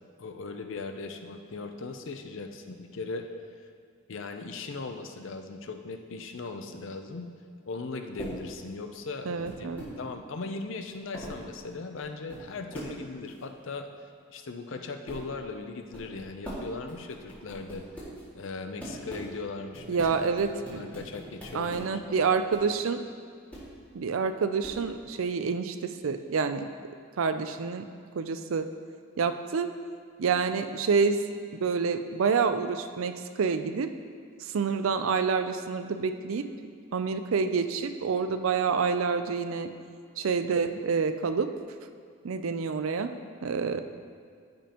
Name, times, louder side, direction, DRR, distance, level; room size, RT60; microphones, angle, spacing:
voice 1, 0.2-3.3 4.1-7.3 7.7-9.3 9.6-9.7 10.0-13.9 14.3-17.8 18.3-20.0 20.5-22.3 43.7-43.8, left 3 dB, 65° left, 6 dB, 0.6 m, -38 dB
sound 1, 8.2-8.3 9.3-9.9 10.4-10.5 10.9-11.4 11.9-12.4 12.7-12.9 13.3-13.4 14.7-14.8 15.1-15.3 15.9-16.6 16.9-18.2 18.8-19.3 19.7-21.8 22.5-22.6 23.5-23.7 24.6-24.8, right 1 dB, 10° left, 2.1 m, -41 dB
voice 2, 9.3-9.8 19.9-20.8 21.5-23.0 23.9-26.7 27.2-27.8 28.2-28.7 29.2-29.7 30.2-31.2 31.5-33.9 34.4-36.5 36.9-39.7 40.2-41.5 42.2-43.1 43.4-43.8, right 5 dB, 80° right, 9 dB, 0.4 m, -28 dB
13.5 x 5.2 x 3.0 m, 2.2 s
head